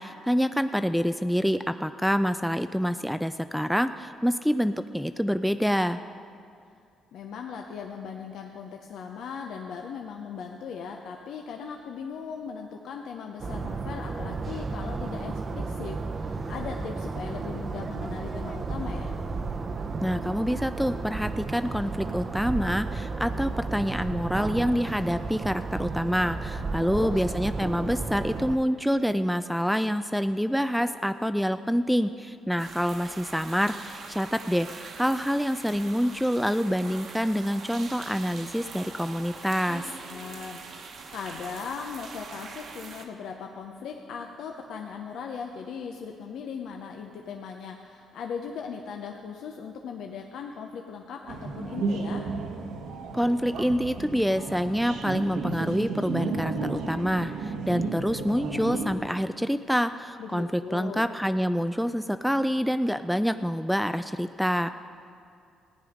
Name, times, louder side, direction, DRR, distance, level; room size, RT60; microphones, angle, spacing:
voice 1, 0.0-6.0 20.0-39.9 53.1-64.7, equal, ahead, 10 dB, 0.3 m, -27 dB
voice 2, 7.1-19.2 26.8-27.2 40.1-52.3 60.2-61.1, left 6 dB, 75° left, 3 dB, 0.7 m, -38 dB
sound 1, 13.4-28.6, right 3 dB, 40° right, 0.6 m, -33 dB
sound 2, 32.6-43.0, right 4 dB, 60° right, 1.1 m, -43 dB
sound 3, 51.3-59.0, right 3 dB, 85° right, 1.2 m, -33 dB
15.5 x 9.5 x 5.1 m, 2.4 s
cardioid pair, 90°, 0 cm